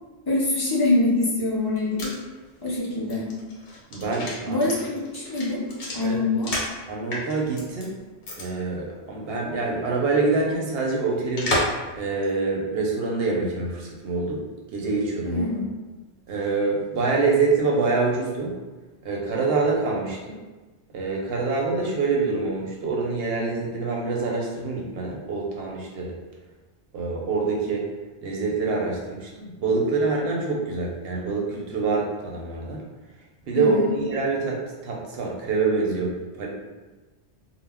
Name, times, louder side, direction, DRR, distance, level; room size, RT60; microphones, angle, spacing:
voice 1, 0.3-2.1 2.6-3.3 4.5-5.6 5.9-6.5 15.2-15.7 33.5-33.9, left 2 dB, 35° left, -7 dB, 0.3 m, -24 dB
sound 1, 1.6-6.8 7.1-7.9 8.2-8.5 8.7-8.8 11.4-11.9 12.2-12.3, left 1 dB, 60° left, 0.9 m, -31 dB
voice 2, 3.9-4.7 6.0-6.2 6.9-7.9 8.4-11.6 11.9-14.4 14.7-15.4 16.3-18.5 19.0-20.4 20.9-26.2 26.9-27.9 28.2-32.8 33.5-36.5, right 3 dB, 65° right, -2 dB, 0.8 m, -25 dB
2.1 x 2.0 x 3.4 m, 1.2 s
omnidirectional pair, 1.2 m